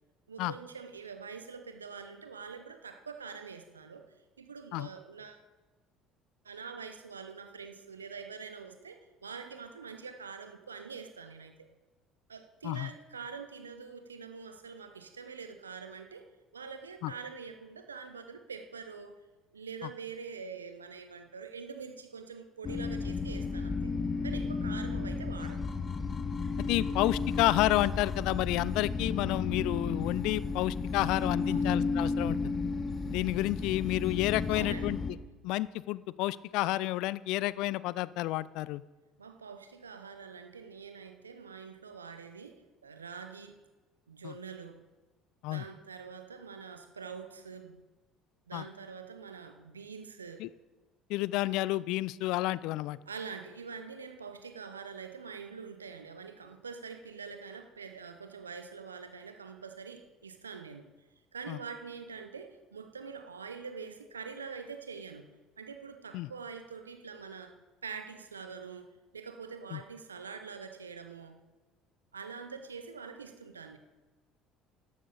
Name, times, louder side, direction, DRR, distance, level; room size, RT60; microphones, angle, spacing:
voice 1, 0.3-4.0 4.4-5.4 6.4-11.7 12.3-16.2 16.5-19.1 19.5-24.0 24.2-25.7 31.4-31.7 34.5-35.0 39.2-43.6 44.1-44.8 45.5-47.8 48.5-50.5 53.1-60.9 61.3-67.5 67.8-71.4 72.1-73.8, right 5 dB, 85° right, 7 dB, 0.8 m, -45 dB
sound 1, 22.6-35.1, left 4 dB, 35° left, 1.1 m, -33 dB
voice 2, 26.7-32.6 33.1-35.0 35.4-38.8 44.2-44.3 45.4-45.6 48.5-48.6 50.4-50.5 51.1-53.0 61.5-61.6 66.1-66.3 69.7-69.8, left 17 dB, 65° left, 20 dB, 0.3 m, -30 dB
14.0 x 11.5 x 4.0 m, 1.2 s
figure-of-eight pair, 60°, 0 cm